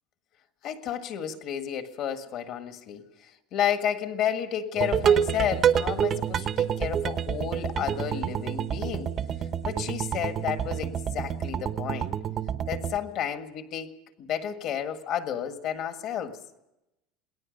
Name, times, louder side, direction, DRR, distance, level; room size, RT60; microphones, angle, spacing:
voice 1, 0.6-9.1 9.6-12.2 12.7-16.4, left 9 dB, 40° left, 1.7 m, -31 dB
sound 1, 4.8-13.0, right 8 dB, 25° right, 0.9 m, -28 dB
28.0 x 20.0 x 5.3 m
cardioid pair, 175°, 0 cm